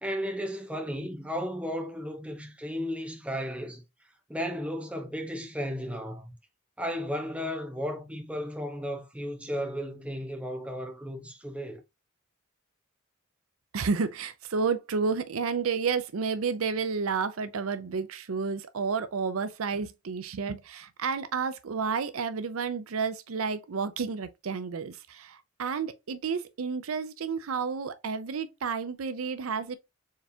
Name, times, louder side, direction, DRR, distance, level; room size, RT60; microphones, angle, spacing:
voice 1, 0.0-3.8 4.3-6.3 6.8-11.8, equal, 5° right, 1.0 m, -34 dB
voice 2, 13.7-29.8, right 5 dB, 80° right, 0.5 m, -31 dB
4.6 x 3.5 x 2.7 m
head